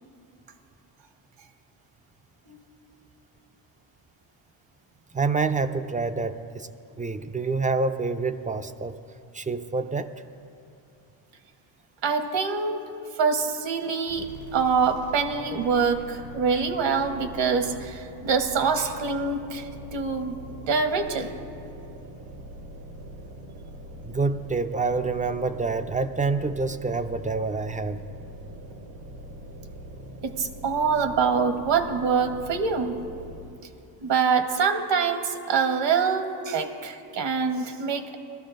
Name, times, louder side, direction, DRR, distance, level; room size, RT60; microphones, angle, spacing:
voice 1, 5.1-6.7 7.0-9.0 9.3-10.1 24.0-28.0, right 4 dB, 20° right, 10 dB, 0.3 m, -27 dB
voice 2, 12.0-12.9 13.2-20.4 20.7-21.3 30.2-32.9 34.0-38.2, right 5 dB, 65° right, 7 dB, 1.2 m, -25 dB
sound 1, 14.1-33.7, equal, 85° right, 1.9 m, -43 dB
20.5 x 13.0 x 2.5 m, 2.6 s
cardioid pair, 90°, 48 cm